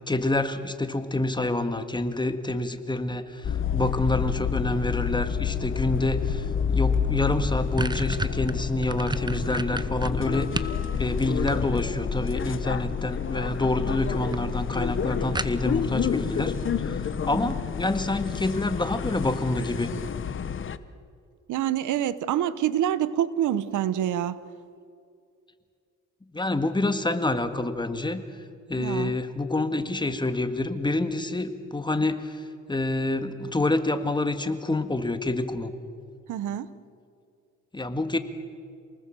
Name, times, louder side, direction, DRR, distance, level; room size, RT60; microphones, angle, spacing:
voice 1, 0.1-10.7 11.0-16.5 16.8-19.9 26.3-28.2 28.7-32.4 32.7-35.7 37.7-38.2, left 2 dB, 15° left, 8 dB, 1.9 m, -27 dB
sound 1, 3.4-20.8, left 7 dB, 40° left, 1.1 m, -29 dB
sound 2, 6.9-7.0 7.3-10.8 11.2-12.0 13.1-13.6 13.9-14.0 14.3-14.4 14.7-14.8 15.3-15.9, right 2 dB, 15° right, 1.0 m, -31 dB
voice 2, 21.5-24.4 28.8-29.2 36.3-36.7, right 11 dB, 80° right, 16 dB, 1.0 m, -26 dB
28.5 x 19.5 x 7.6 m, 2.3 s
cardioid pair, 90°, 30 cm